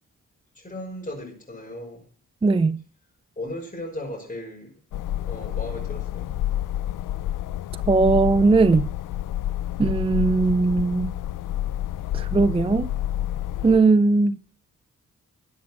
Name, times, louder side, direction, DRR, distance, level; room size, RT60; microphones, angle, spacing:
voice 1, 0.5-2.0 3.4-4.7 5.2-6.3, left 1 dB, 25° left, 6.0 m, -36 dB
voice 2, 2.4-2.8 7.9-8.9 9.8-11.1 12.1-12.9 13.6-14.4, right 3 dB, 20° right, 0.5 m, -19 dB
sound 1, 4.9-13.8, left 12 dB, 90° left, 0.5 m, -29 dB
12.5 x 7.6 x 6.1 m
cardioid pair, 80°, 31 cm